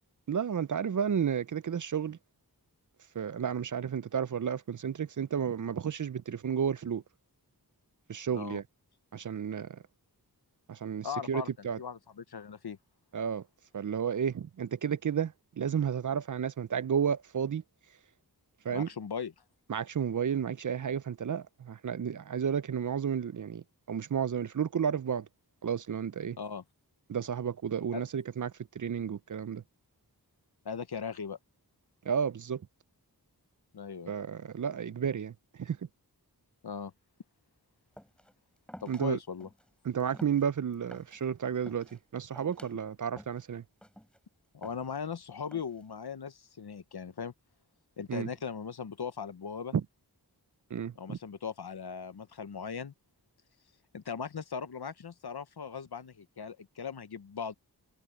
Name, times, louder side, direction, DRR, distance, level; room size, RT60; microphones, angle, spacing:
voice 1, 0.3-2.2 3.2-7.0 8.1-8.6 9.1-9.8 10.7-11.8 13.1-13.4 13.7-17.6 18.7-18.9 19.7-25.3 25.6-26.4 27.1-29.6 32.1-32.6 34.1-35.3 35.6-35.8 38.9-39.2 39.8-43.6 48.1-48.3 49.7-49.8 50.7-51.2, right 7 dB, 50° right, 0.5 m, -32 dB
voice 2, 11.0-12.8 18.7-19.3 26.4-26.6 27.9-28.0 30.6-31.4 33.7-34.1 36.6-36.9 38.8-39.5 44.5-47.3 48.0-49.7 51.0-52.9 53.9-57.5, left 6 dB, 75° left, 1.0 m, -39 dB
sound 1, 38.0-38.3 38.7-39.0 39.4-39.7 40.0-41.2 41.5-42.0 42.4-42.7 43.2-43.4 43.8-44.2 44.6-45.1 45.5-45.9, equal, ahead, 3.9 m, -51 dB
wide cardioid pair, 65°, 39 cm